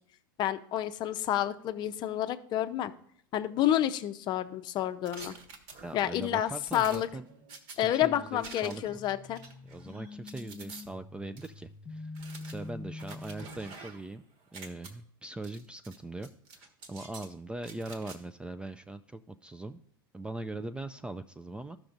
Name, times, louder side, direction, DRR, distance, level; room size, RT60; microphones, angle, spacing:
voice 1, 0.4-2.9 3.3-5.3 5.9-7.1 7.8-9.4, left 12 dB, 40° left, 10 dB, 0.6 m, -29 dB
sound 1, 5.1-6.2 6.7-7.8 8.4-9.0 9.3-10.8 11.4-11.5 12.1-14.1 14.4-14.9 15.4-16.0 16.2-17.3 17.6-18.2, right 4 dB, 50° right, 1.4 m, -48 dB
voice 2, 5.8-7.2 7.7-9.0 9.6-14.3 14.5-19.8 20.1-21.8, right 2 dB, 10° right, 11 dB, 0.3 m, -41 dB
sound 2, 7.9-13.8, left 3 dB, 20° left, 1.4 m, -46 dB
14.0 x 6.0 x 2.6 m, 0.64 s
hypercardioid pair, 90°, 11 cm